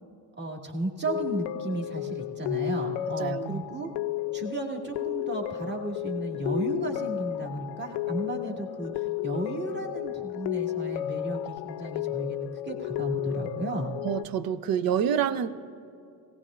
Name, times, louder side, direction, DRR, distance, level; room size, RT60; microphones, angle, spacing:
voice 1, 0.4-3.9 4.3-13.9, right 2 dB, 25° right, 1 dB, 2.0 m, -34 dB
sound 1, 1.1-14.2, left 13 dB, 60° left, 0.6 m, -33 dB
voice 2, 3.2-3.6 14.0-15.5, right 9 dB, 50° right, 13 dB, 0.7 m, -27 dB
17.5 x 17.0 x 2.5 m, 2.5 s
supercardioid pair, 75°, 45 cm